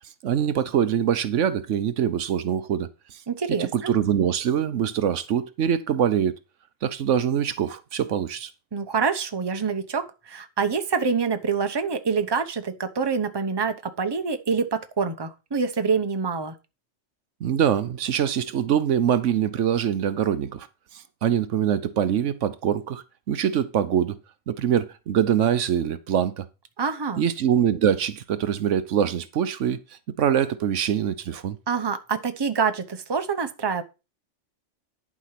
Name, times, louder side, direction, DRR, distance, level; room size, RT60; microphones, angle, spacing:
voice 1, 0.2-3.2 3.6-6.3 6.8-8.5 17.4-20.7 20.9-24.2 24.5-26.4 27.2-29.8 30.2-31.6, right 9 dB, 75° right, 1.1 m, -24 dB
voice 2, 3.3-3.9 8.7-16.5 26.8-27.3 31.7-33.8, right 5 dB, 25° right, 0.8 m, -26 dB
11.0 x 5.1 x 5.9 m
omnidirectional pair, 1.3 m